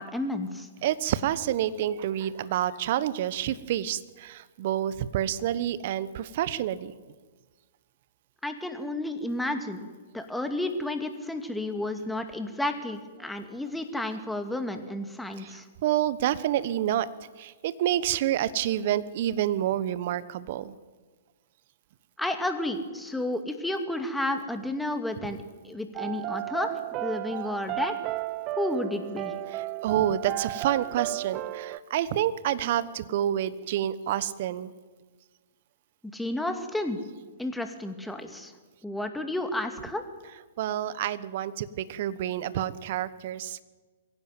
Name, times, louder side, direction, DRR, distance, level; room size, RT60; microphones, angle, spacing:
voice 1, 0.0-0.7 8.4-15.7 22.2-26.7 27.0-27.9 28.6-29.3 36.0-37.0 37.4-38.5 38.8-40.0, left 1 dB, 5° left, 6 dB, 2.4 m, -31 dB
voice 2, 0.8-6.9 15.4-17.1 17.4-20.7 29.8-34.7 40.6-43.6, right 11 dB, 50° right, 16 dB, 1.1 m, -28 dB
sound 1, 26.0-31.8, right 15 dB, 35° right, 0.8 m, -34 dB
22.5 x 16.5 x 9.3 m, 1.4 s
figure-of-eight pair, 115°, 0 cm